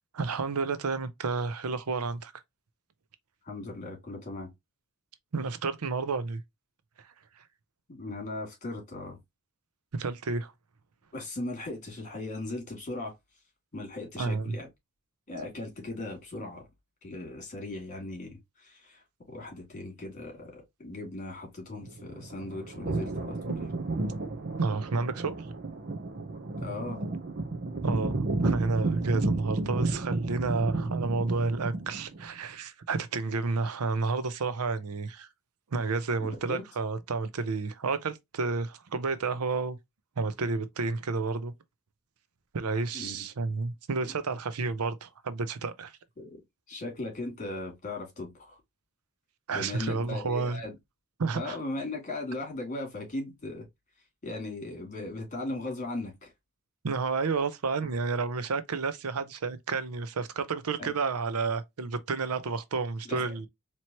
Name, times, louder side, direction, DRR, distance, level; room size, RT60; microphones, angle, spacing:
voice 1, 0.1-2.3 5.3-6.4 9.9-10.5 14.2-14.6 24.6-25.4 27.8-35.3 35.7-39.8 40.2-41.5 42.5-45.9 49.5-50.6 51.2-51.6 56.8-63.5, right 4 dB, 90° right, 0.6 m, -31 dB
voice 2, 3.5-4.5 7.9-9.2 11.1-13.1 13.7-14.7 15.3-16.7 17.0-19.0 19.3-23.7 26.6-27.0 36.2-36.6 42.9-43.2 44.0-44.1 46.2-46.4 46.7-48.6 49.5-50.8 51.3-53.6 54.2-56.3 57.8-57.9 60.8-60.9 63.1-63.3, left 2 dB, 35° left, 2.5 m, -38 dB
sound 1, 21.8-32.2, right 2 dB, 45° right, 0.7 m, -32 dB
4.4 x 3.0 x 2.9 m
head